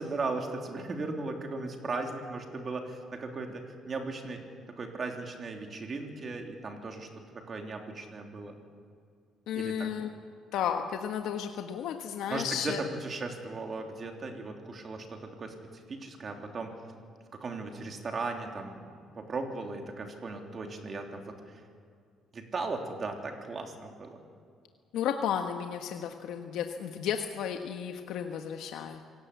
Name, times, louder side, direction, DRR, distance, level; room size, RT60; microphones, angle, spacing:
voice 1, 0.0-4.4 4.8-7.1 7.3-8.5 9.5-9.9 12.3-12.8 13.0-15.5 15.9-16.7 17.3-21.2 22.3-24.2, right 3 dB, 35° right, 3 dB, 3.3 m, -37 dB
voice 2, 9.5-10.1 10.5-12.8 24.9-29.0, left 8 dB, 80° left, 5 dB, 1.4 m, -33 dB
26.5 x 17.5 x 8.4 m, 2.2 s
cardioid pair, 125°, 0 cm